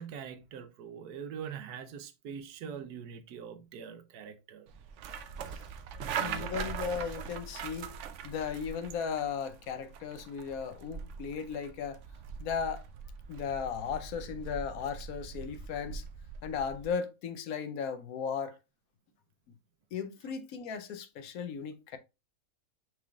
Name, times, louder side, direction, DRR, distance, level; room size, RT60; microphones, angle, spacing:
voice 1, 0.0-4.7 6.0-6.6, right 7 dB, 90° right, 1.3 m, -43 dB
sound 1, 4.7-16.9, right 7 dB, 65° right, 0.8 m, -42 dB
voice 2, 6.2-7.9 8.2-12.0 12.4-12.8 13.3-16.0 16.4-18.6 19.9-22.0, left 6 dB, 70° left, 1.1 m, -36 dB
6.0 x 3.5 x 2.3 m
omnidirectional pair, 1.6 m